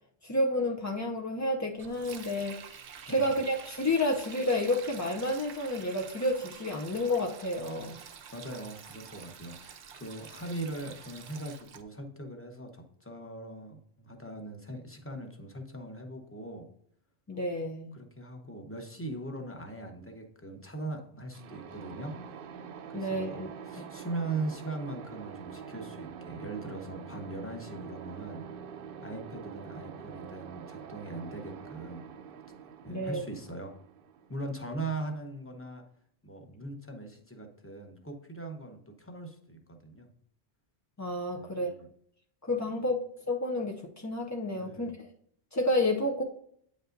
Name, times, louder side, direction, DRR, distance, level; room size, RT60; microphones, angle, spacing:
voice 1, 0.2-2.6 3.1-8.0 17.3-18.0 22.9-23.5 23.8-23.9 32.9-33.2 41.0-41.7 42.4-43.0 43.3-45.1 45.5-46.2, left 1 dB, 30° left, 0 dB, 0.3 m, -30 dB
Sink (filling or washing), 1.8-11.8, right 7 dB, 90° right, 1.0 m, -48 dB
voice 2, 8.3-16.7 17.9-22.4 22.9-28.5 29.0-32.0 32.8-33.8 34.3-35.9 36.2-40.1 41.3-41.9 44.5-45.0, right 2 dB, 15° left, 4 dB, 0.8 m, -40 dB
sound 1, 21.3-35.0, right 7 dB, 60° right, 0.7 m, -45 dB
8.8 x 5.2 x 2.6 m, 0.66 s
omnidirectional pair, 1.1 m